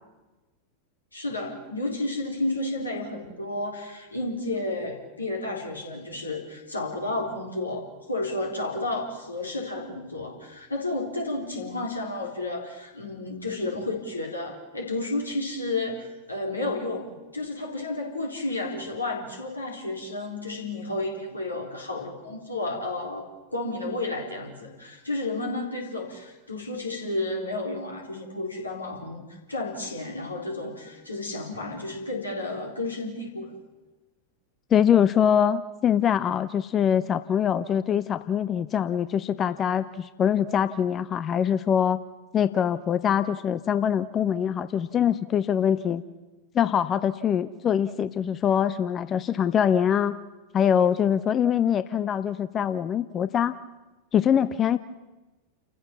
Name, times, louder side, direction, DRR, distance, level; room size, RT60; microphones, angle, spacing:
voice 1, 1.1-33.5, left 2 dB, 80° left, 1 dB, 3.9 m, -32 dB
voice 2, 34.7-42.0 42.3-46.0 46.5-50.2 50.5-53.5 54.1-54.8, left 8 dB, 25° left, 14 dB, 0.6 m, -23 dB
29.5 x 15.0 x 7.2 m, 1.2 s
figure-of-eight pair, 90°, 0 cm